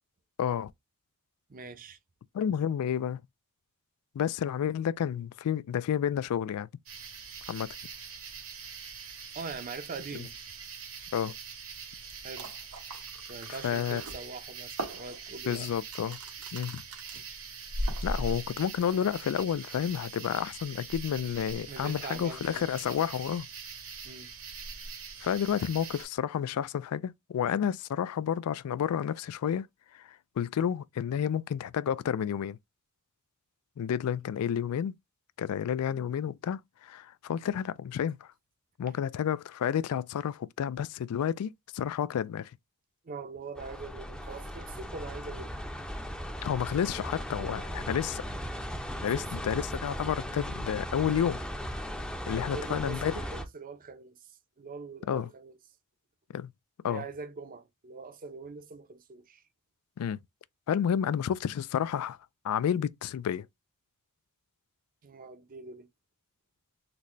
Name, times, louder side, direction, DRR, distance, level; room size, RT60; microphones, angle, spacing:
voice 1, 0.4-0.7 2.3-3.2 4.1-6.7 7.5-7.7 10.1-10.2 11.1-11.3 13.5-14.0 15.5-16.2 16.5-16.8 18.0-23.5 25.2-29.7 29.9-32.6 33.8-35.0 35.4-38.3 38.8-42.5 46.4-48.3 49.0-51.4 52.3-53.1 55.1-55.3 56.3-56.5 56.8-57.0 60.0-60.2 60.7-62.2 62.4-63.5, left 8 dB, 75° left, 0.3 m, -30 dB
voice 2, 1.5-2.0 9.3-10.3 12.2-12.5 13.3-15.7 21.7-22.7 24.0-24.3 43.0-45.5 49.0-49.2 52.5-55.6 56.8-59.4 65.0-65.9, right 4 dB, 40° right, 0.6 m, -43 dB
sound 1, 6.9-26.1, right 3 dB, 65° right, 1.1 m, -41 dB
sound 2, 12.0-12.1 12.3-17.2 17.6-18.4 18.8-19.1, right 4 dB, 90° right, 1.3 m, -43 dB
sound 3, 43.6-53.5, equal, 5° left, 0.5 m, -37 dB
3.9 x 2.2 x 3.0 m
head